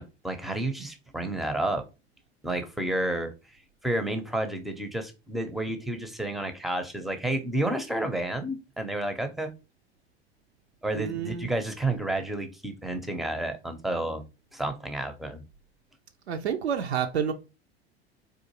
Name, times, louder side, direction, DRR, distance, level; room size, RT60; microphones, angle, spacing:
voice 1, 0.0-1.9 2.4-3.3 3.8-9.5 10.8-14.2 14.5-15.4, right 1 dB, ahead, 0.5 m, -30 dB
voice 2, 10.9-11.5 16.3-17.3, right 8 dB, 85° right, 0.5 m, -29 dB
3.6 x 2.5 x 2.8 m
figure-of-eight pair, 80°, 32 cm